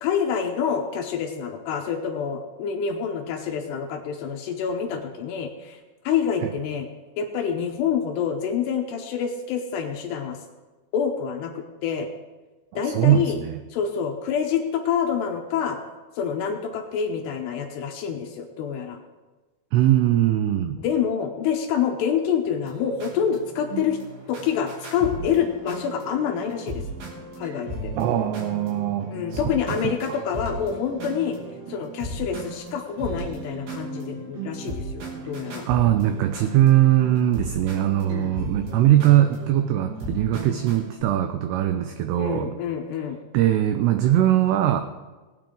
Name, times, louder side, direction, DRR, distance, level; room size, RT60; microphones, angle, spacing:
voice 1, 0.0-5.8 6.0-6.9 7.2-10.4 10.9-12.1 12.8-13.4 13.7-15.8 16.2-19.0 20.8-24.0 24.3-26.8 27.4-27.9 29.1-31.4 31.7-35.7 38.1-38.3 42.2-43.2, left 7 dB, 75° left, 4 dB, 2.6 m, -27 dB
voice 2, 12.7-13.6 19.7-20.8 27.9-30.2 35.7-42.5 43.3-44.8, right 12 dB, 90° right, 8 dB, 2.3 m, -21 dB
sound 1, 22.6-41.0, right 2 dB, 60° right, 4.4 m, -36 dB
19.0 x 9.4 x 3.8 m, 1.3 s
omnidirectional pair, 5.5 m